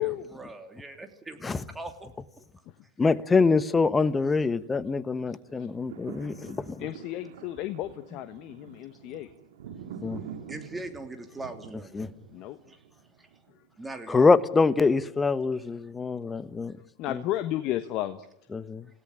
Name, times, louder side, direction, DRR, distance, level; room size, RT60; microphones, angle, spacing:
voice 1, 0.0-2.2 10.0-10.1 10.5-12.1 12.7-12.8 13.2-13.3 13.8-14.3, right 2 dB, 10° right, 6 dB, 3.0 m, -41 dB
voice 2, 3.0-6.8 10.0-10.2 11.9-12.1 14.1-16.8 17.1-17.2 18.5-18.9, left 4 dB, 15° left, 15 dB, 1.3 m, -25 dB
sound 1, 5.5-13.7 14.3-14.4, right 8 dB, 65° right, 2.6 m, -46 dB
voice 3, 6.8-9.3 12.3-12.6 13.5-13.6 17.0-18.3, left 14 dB, 45° left, 11 dB, 1.3 m, -33 dB
28.0 x 17.5 x 9.9 m, 0.83 s
figure-of-eight pair, 85°, 0 cm